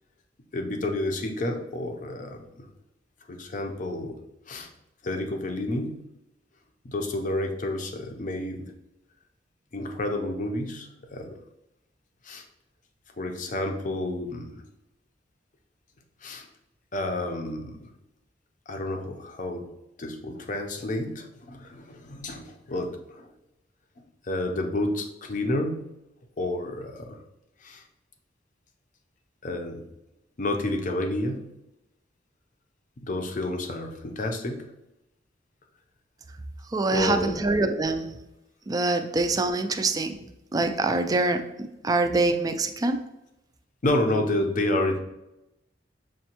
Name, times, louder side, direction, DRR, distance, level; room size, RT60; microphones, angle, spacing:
voice 1, 0.5-2.7 3.3-4.2 4.5-4.7 5.0-6.0 6.8-8.7 9.7-11.4 12.2-12.4 13.2-14.6 16.2-16.5 16.9-17.9 18.7-19.7 20.0-23.3 24.2-25.9 26.4-27.2 27.6-27.8 29.4-29.8 30.4-31.5 33.0-34.7 36.9-37.3 43.8-45.0, left 1 dB, 45° left, 4 dB, 0.5 m, -30 dB
voice 2, 36.6-38.2 38.7-43.0, right 2 dB, 20° right, 7 dB, 0.3 m, -25 dB
6.2 x 2.2 x 2.8 m, 0.90 s
head